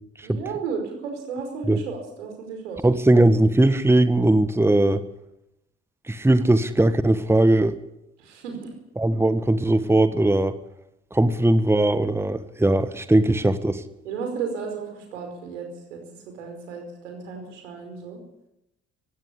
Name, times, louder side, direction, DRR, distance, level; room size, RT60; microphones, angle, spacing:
voice 1, 0.2-2.9 8.2-8.7 14.1-18.2, right 5 dB, 80° right, 4 dB, 5.0 m, -34 dB
voice 2, 2.8-5.0 6.1-7.8 9.0-10.5 11.1-13.8, right 1 dB, 5° right, 11 dB, 1.5 m, -19 dB
18.0 x 16.5 x 8.5 m, 0.86 s
figure-of-eight pair, 50°, 35 cm